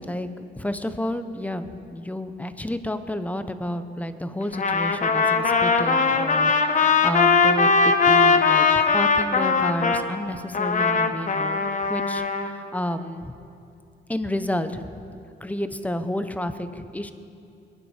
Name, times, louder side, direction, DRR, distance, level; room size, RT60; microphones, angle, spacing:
voice 1, 0.0-8.7 8.9-11.6 11.9-13.3 14.1-14.8 15.4-17.1, left 1 dB, 5° left, 10 dB, 0.8 m, -30 dB
Trumpet, 4.5-10.0 10.5-12.5, left 4 dB, 40° left, 1.1 m, -20 dB
21.5 x 11.0 x 5.0 m, 2.6 s
cardioid pair, 90°, 20 cm